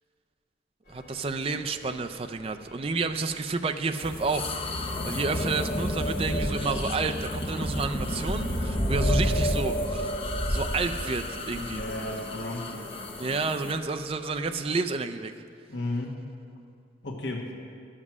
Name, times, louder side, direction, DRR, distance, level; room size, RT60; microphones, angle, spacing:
sound 1, 0.9-14.7, equal, 50° left, 2.7 m, -35 dB
voice 1, 0.9-4.5 5.1-10.1 10.5-11.8 13.2-15.3, right 4 dB, 30° right, 7 dB, 0.4 m, -30 dB
sound 2, 4.0-13.8, left 1 dB, 30° left, 0.6 m, -32 dB
voice 2, 11.6-12.9 15.7-16.2 17.0-17.5, left 1 dB, 65° left, -1 dB, 1.4 m, -34 dB
11.0 x 7.5 x 6.1 m, 2.3 s
head